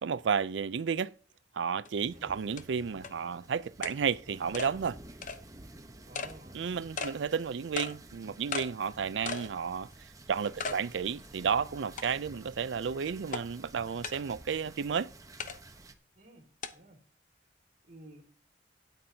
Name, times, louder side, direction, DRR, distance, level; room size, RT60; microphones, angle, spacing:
voice 1, 0.0-1.1 1.5-5.0 6.5-9.9 10.3-15.1, right 6 dB, 85° right, 0.4 m, -32 dB
sound 1, 1.9-2.0 2.6-2.7 3.0-3.1 3.8-4.0 4.5-4.7 5.2-5.4 6.1-6.3 7.0-7.1 7.8-7.9 8.5-8.7 9.3-9.5 9.9-10.0 10.6-10.8 11.2-11.3 12.0-12.4 13.3-13.4 14.0-14.2 15.4-15.6 16.6-16.7, left 4 dB, 45° left, 0.8 m, -36 dB
sound 2, 2.0-15.9, right 2 dB, 20° right, 1.0 m, -52 dB
voice 2, 6.0-6.6 6.9-7.2 10.5-10.9 16.1-17.0 17.8-18.2, right 1 dB, 50° right, 2.5 m, -54 dB
13.0 x 9.3 x 2.8 m
head